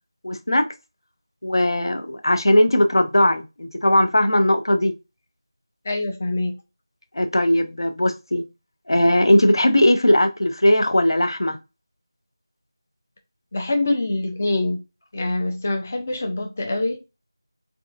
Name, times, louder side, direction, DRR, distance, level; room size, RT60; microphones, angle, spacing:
voice 1, 0.2-0.7 1.4-4.9 7.1-8.4 8.9-11.6, left 1 dB, 70° left, 0.6 m, -18 dB
voice 2, 5.8-6.6 13.5-14.8 15.1-17.0, left 2 dB, 25° left, 0.4 m, -24 dB
3.6 x 2.4 x 2.4 m
figure-of-eight pair, 175°, 2 cm